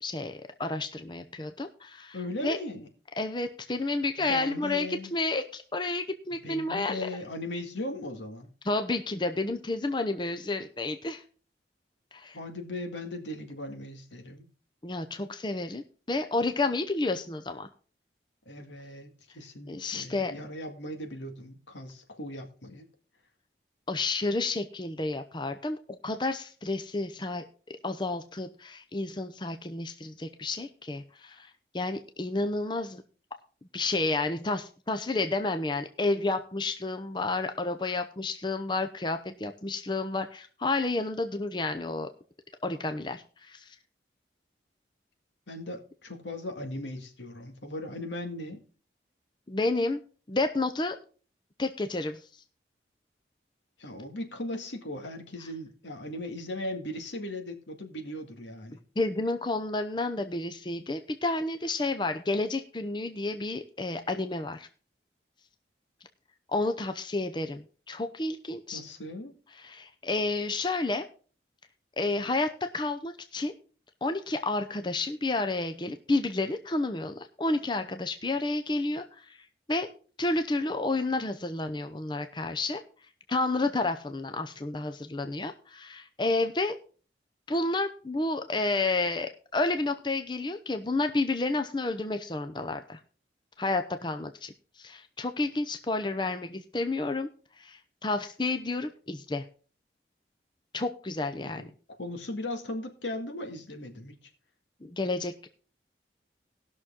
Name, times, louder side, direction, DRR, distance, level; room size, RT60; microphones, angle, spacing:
voice 1, 0.0-2.2 2.4-2.6 3.2-7.1 8.6-11.2 12.1-12.4 14.8-17.7 19.7-20.3 23.9-25.8 26.0-27.4 27.8-33.0 33.7-42.1 42.6-43.8 49.5-50.0 50.3-51.0 51.6-52.2 59.0-64.7 66.5-68.8 69.6-71.1 72.0-73.5 74.0-79.9 80.2-82.8 83.3-86.8 87.5-93.0 93.6-97.3 97.6-99.4 100.7-101.6 104.8-105.5, left 2 dB, 25° left, 0.6 m, -30 dB
voice 2, 2.1-2.9 4.2-5.1 6.4-8.5 12.3-14.5 18.5-22.9 45.5-48.6 53.8-58.8 68.7-69.3 101.6-101.7 102.0-104.3, left 1 dB, 85° left, 2.0 m, -38 dB
18.5 x 6.3 x 3.7 m
head